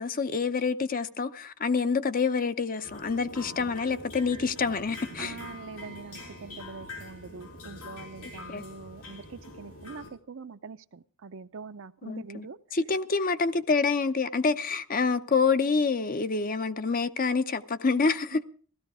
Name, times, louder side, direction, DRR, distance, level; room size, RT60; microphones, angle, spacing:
voice 1, 0.0-5.3 8.5-8.6 12.1-12.5 12.7-18.4, left 4 dB, 40° left, 0.7 m, -27 dB
sound 1, 2.8-10.1, left 2 dB, 90° left, 6.0 m, -44 dB
voice 2, 5.2-12.8 18.3-18.4, right 4 dB, 60° right, 0.6 m, -44 dB
16.5 x 13.5 x 4.8 m
head